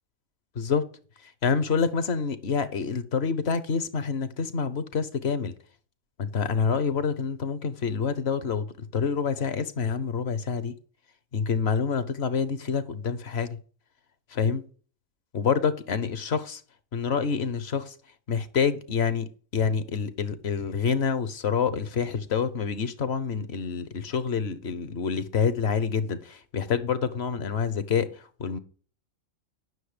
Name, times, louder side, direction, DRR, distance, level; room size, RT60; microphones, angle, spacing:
voice 1, 0.5-0.9 1.2-5.5 6.2-10.8 11.3-13.6 14.3-14.6 15.3-16.6 16.9-17.9 18.3-28.6, left 6 dB, 60° left, 1.0 m, -27 dB
9.4 x 6.3 x 4.9 m
omnidirectional pair, 1.3 m